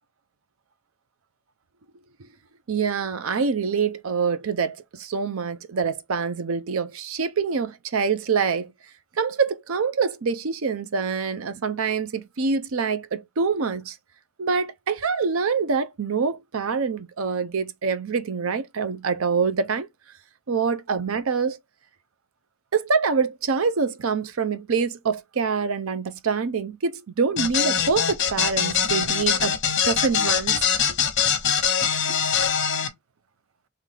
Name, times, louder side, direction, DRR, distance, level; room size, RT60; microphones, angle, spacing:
voice 1, 2.7-8.7 9.2-14.0 14.4-19.9 20.5-21.6 22.7-29.5 29.8-30.6 32.1-32.2, right 5 dB, 80° right, 0.6 m, -25 dB
sound 1, 27.4-32.9, left 7 dB, 55° left, 0.9 m, -23 dB
3.7 x 3.2 x 3.3 m
head